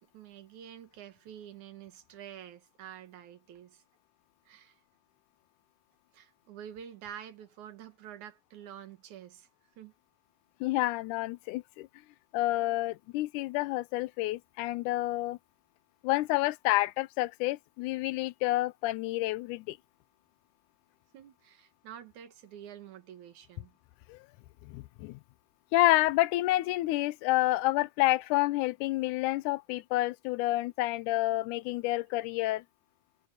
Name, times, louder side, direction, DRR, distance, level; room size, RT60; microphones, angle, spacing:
voice 1, 0.0-3.8 4.5-4.8 6.1-9.5 9.8-9.9 21.1-23.7, right 10 dB, 75° right, 2.8 m, -48 dB
voice 2, 10.6-11.9 12.3-15.4 16.0-19.8 24.1-24.2 24.6-25.2 25.7-32.6, left 17 dB, 85° left, 2.1 m, -29 dB
omnidirectional pair, 3.5 m